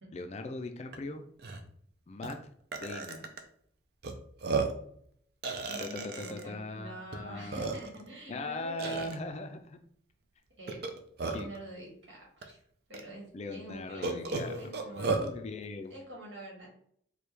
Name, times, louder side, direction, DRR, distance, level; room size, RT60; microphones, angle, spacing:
voice 1, 0.1-1.3 2.1-2.5 2.8-3.3 5.8-7.7 8.3-9.8 11.3-11.5 13.3-14.7 15.2-15.9, left 2 dB, 35° left, 7 dB, 0.3 m, -40 dB
Burping eructation, 0.9-1.0 1.4-1.6 2.2-2.3 2.7-3.4 4.0-4.1 4.4-4.8 5.4-6.4 7.1-7.2 7.5-8.1 8.8-9.1 10.7-11.6 12.4-12.5 12.9-13.0 14.0-15.3, right 3 dB, 55° right, 0.5 m, -33 dB
voice 2, 5.7-9.1 10.6-11.0 11.3-12.6 12.9-15.4 15.9-16.7, right 1 dB, 70° right, -3 dB, 1.5 m, -47 dB
4.4 x 2.2 x 3.3 m, 0.65 s
head